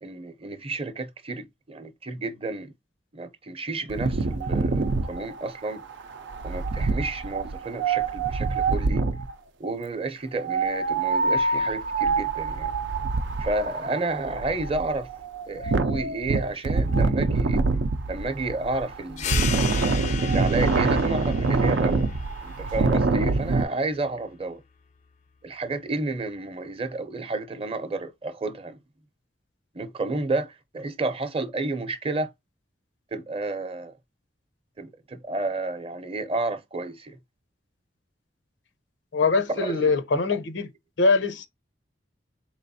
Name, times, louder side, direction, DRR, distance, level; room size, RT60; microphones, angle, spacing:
voice 1, 0.0-2.7 3.1-5.8 6.4-9.0 9.6-12.7 13.4-15.1 15.5-17.6 18.1-19.6 20.2-22.1 22.4-24.6 25.4-28.8 29.7-32.3 33.1-33.9 34.8-37.2 39.5-39.9 40.3-40.4, right 2 dB, 30° right, 0.6 m, -31 dB
Wind, 3.9-9.3 10.4-23.6, right 3 dB, 90° right, 0.5 m, -25 dB
sound 1, 19.2-24.3, left 9 dB, 40° left, 0.3 m, -36 dB
voice 2, 39.1-40.7 41.0-41.5, left 4 dB, 80° left, 0.7 m, -22 dB
4.0 x 3.1 x 2.7 m
head